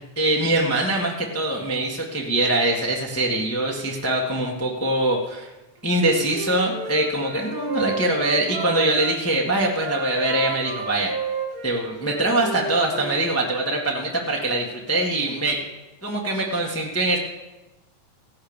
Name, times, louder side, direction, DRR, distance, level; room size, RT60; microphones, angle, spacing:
voice 1, 0.0-5.5 5.8-11.1 11.6-15.6 16.0-17.2, right 1 dB, 10° left, -2 dB, 0.6 m, -23 dB
Wind instrument woodwind instrument, 5.9-9.1 9.7-13.3, right 4 dB, 35° right, 2.0 m, -32 dB
16.0 x 6.7 x 8.8 m, 1.0 s
omnidirectional pair, 3.5 m